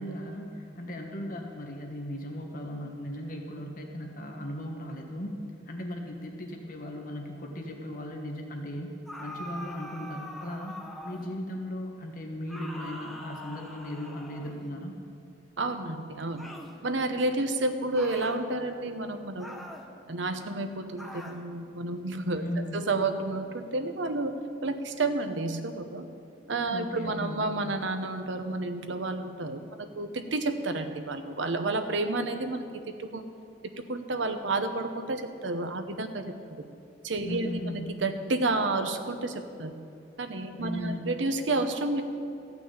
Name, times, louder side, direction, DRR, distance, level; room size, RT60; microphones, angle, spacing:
voice 1, 0.0-5.3 5.7-8.9 9.2-10.8 11.0-15.0 22.3-22.8 26.7-27.5 37.2-37.9 40.6-41.1, left 1 dB, 50° left, 2 dB, 1.4 m, -37 dB
sound 1, 9.1-11.4 12.5-14.7 16.4-16.8 17.9-18.4 19.4-19.9 21.0-21.4, equal, ahead, 0.9 m, -43 dB
voice 2, 15.6-16.5 16.8-19.7 20.1-22.4 22.7-24.3 24.6-26.1 26.5-32.7 33.0-33.2 33.9-36.6 37.0-39.8 40.2-42.0, right 2 dB, 75° right, 7 dB, 0.9 m, -30 dB
14.0 x 6.0 x 8.8 m, 2.6 s
head